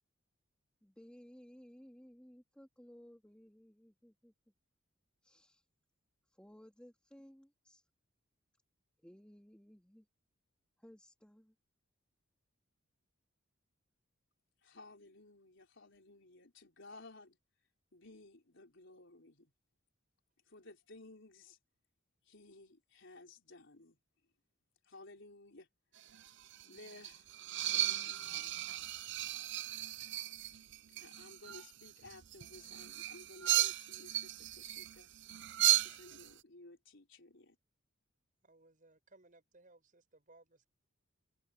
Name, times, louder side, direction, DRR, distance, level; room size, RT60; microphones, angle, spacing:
voice 1, 0.8-4.3 5.2-5.6 6.3-7.9 9.0-10.1 10.8-11.5, equal, 5° left, 2.7 m, -58 dB
voice 2, 14.6-17.4 17.9-19.5 20.5-21.6 22.2-24.0 24.8-25.7 26.6-27.3 27.6-29.2 31.0-35.1 35.8-37.6, left 2 dB, 65° left, 4.7 m, -57 dB
sound 1, 26.0-36.3, right 14 dB, 60° right, 0.6 m, -36 dB
voice 3, 38.4-40.7, right 2 dB, 40° right, 7.1 m, -64 dB
head